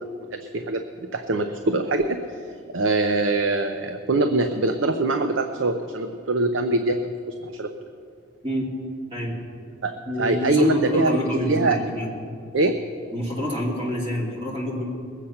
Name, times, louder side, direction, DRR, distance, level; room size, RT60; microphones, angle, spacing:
voice 1, 0.3-2.2 2.7-7.1 7.4-7.7 9.8-11.2 11.4-11.8 12.5-12.7, right 2 dB, 80° right, 7 dB, 0.7 m, -23 dB
voice 2, 10.1-12.1 13.1-14.8, left 1 dB, 30° right, -4 dB, 2.5 m, -26 dB
21.0 x 8.2 x 5.7 m, 2.4 s
head